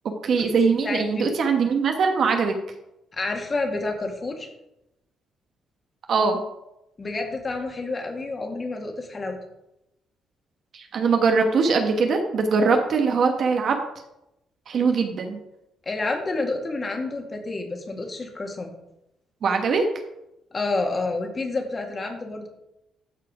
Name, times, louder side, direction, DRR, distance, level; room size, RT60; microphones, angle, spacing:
voice 1, 0.2-2.6 6.1-6.4 10.7-13.8 14.7-15.4 19.4-19.8, right 5 dB, 60° right, 4 dB, 1.3 m, -21 dB
voice 2, 0.8-1.3 3.1-4.5 7.0-9.4 15.9-18.7 20.5-22.5, left 3 dB, 35° left, 2 dB, 2.2 m, -29 dB
13.0 x 4.9 x 4.9 m, 0.87 s
cardioid pair, 90°, 0 cm